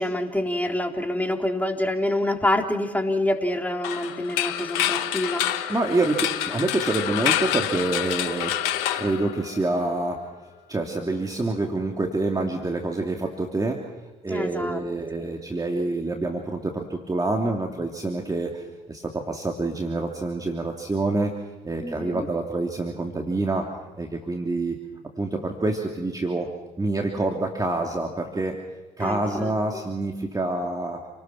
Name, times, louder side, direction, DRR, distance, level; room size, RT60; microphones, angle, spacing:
voice 1, 0.0-5.5 14.3-14.8 15.2-15.3 21.8-22.3 29.0-29.5, left 1 dB, 10° left, 3 dB, 3.9 m, -26 dB
sound 1, 3.8-9.8, left 11 dB, 75° left, 1.2 m, -27 dB
voice 2, 5.7-8.5 8.9-10.3 10.7-13.8 14.2-23.7 24.0-24.8 25.2-26.5 26.8-28.5 29.0-31.0, right 2 dB, 20° right, 1 dB, 3.1 m, -27 dB
29.0 x 19.5 x 6.1 m, 1.2 s
hypercardioid pair, 50°, 17 cm